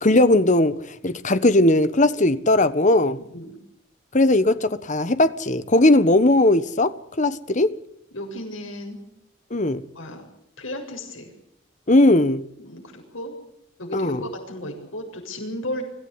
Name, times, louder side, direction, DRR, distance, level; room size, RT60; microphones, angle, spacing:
voice 1, 0.0-3.2 4.1-7.7 9.5-9.8 11.9-12.4 13.9-14.2, left 1 dB, 40° left, 1.3 m, -18 dB
voice 2, 3.2-3.6 8.1-9.0 10.0-10.3 10.6-11.3 12.6-13.4 13.8-15.8, left 1 dB, 90° left, 7.4 m, -34 dB
25.0 x 16.0 x 9.7 m
head